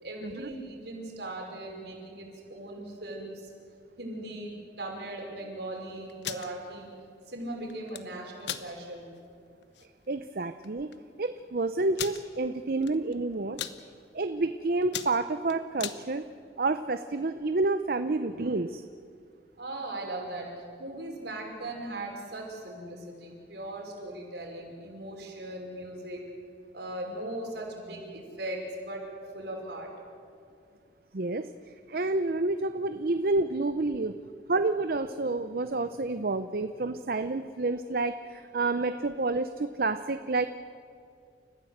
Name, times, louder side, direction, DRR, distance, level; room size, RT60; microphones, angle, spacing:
voice 1, 0.0-3.5 4.0-6.9 7.3-9.1 19.6-26.2 26.7-29.0 29.3-29.9, right 1 dB, 70° right, 0 dB, 5.4 m, -39 dB
sound 1, 6.1-6.5 7.7-8.0 8.4-8.7 9.2-9.3 9.6-9.8 10.6-10.7 10.9-11.0 11.9-12.2 12.8-13.1 13.4-13.8 14.3-14.5 14.8-16.0, left 9 dB, 75° left, 1.1 m, -36 dB
voice 2, 10.1-10.9 11.2-13.6 14.1-16.2 16.6-18.8 31.1-31.5 31.9-34.2 34.5-40.5, right 3 dB, 55° right, 10 dB, 0.6 m, -29 dB
29.5 x 15.0 x 8.0 m, 2.4 s
head